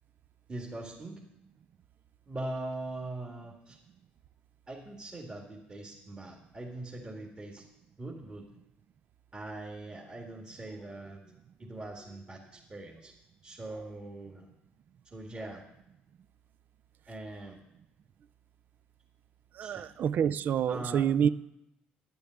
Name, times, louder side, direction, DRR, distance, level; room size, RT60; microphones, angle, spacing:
voice 1, 0.5-1.2 2.3-3.8 4.7-7.7 8.0-8.5 9.3-11.2 11.6-13.1 13.4-14.5 15.0-15.6 17.1-17.6 19.6-19.9 20.7-21.1, right 2 dB, 25° right, -2 dB, 2.1 m, -41 dB
voice 2, 19.5-21.3, right 8 dB, 55° right, 17 dB, 0.3 m, -27 dB
11.0 x 6.9 x 9.3 m, 0.85 s
supercardioid pair, 80°, 4 cm